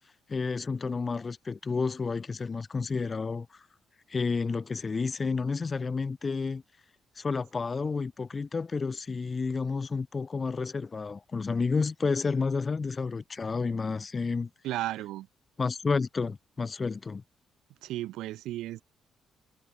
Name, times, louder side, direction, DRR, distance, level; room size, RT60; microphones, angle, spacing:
voice 1, 0.3-3.5 4.1-6.6 7.2-14.5 15.6-17.2, left 4 dB, 35° left, 2.7 m, -30 dB
voice 2, 14.6-15.3 17.8-18.8, right 15 dB, 90° right, 1.1 m, -34 dB
cardioid pair, 90°, 0 cm